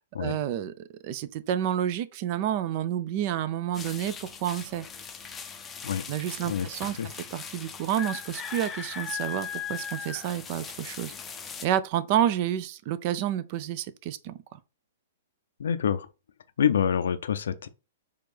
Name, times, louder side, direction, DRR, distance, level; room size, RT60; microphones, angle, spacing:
voice 1, 0.2-4.9 6.1-7.0 7.3-11.1 11.6-14.6, right 11 dB, 45° right, 0.4 m, -29 dB
sound 1, 3.7-11.7, left 7 dB, 15° left, 0.5 m, -39 dB
voice 2, 15.6-16.1 16.6-17.7, left 8 dB, 70° left, 0.4 m, -26 dB
4.3 x 2.5 x 3.2 m
hypercardioid pair, 120°, 0 cm